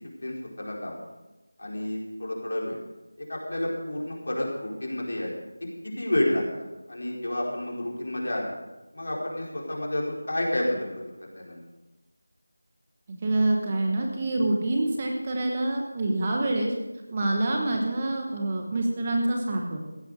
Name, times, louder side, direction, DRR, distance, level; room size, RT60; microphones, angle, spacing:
voice 1, 0.2-1.0 1.6-2.8 3.3-5.3 5.6-8.5 8.9-11.6, left 1 dB, 60° left, -2 dB, 4.5 m, -30 dB
voice 2, 13.1-16.7 17.1-19.9, right 2 dB, 20° right, 2 dB, 1.0 m, -26 dB
15.5 x 11.0 x 5.0 m, 1.0 s
figure-of-eight pair, 180°, 0 cm